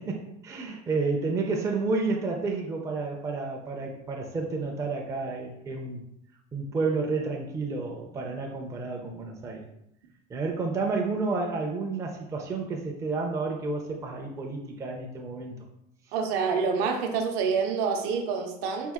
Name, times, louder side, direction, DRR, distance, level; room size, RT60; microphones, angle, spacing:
voice 1, 0.0-6.0 6.5-9.6 10.3-15.6, right 3 dB, 15° right, 0 dB, 0.5 m, -30 dB
voice 2, 16.1-18.9, right 5 dB, 55° right, 4 dB, 0.7 m, -27 dB
4.5 x 2.3 x 3.5 m, 0.79 s
supercardioid pair, 145°, 20 cm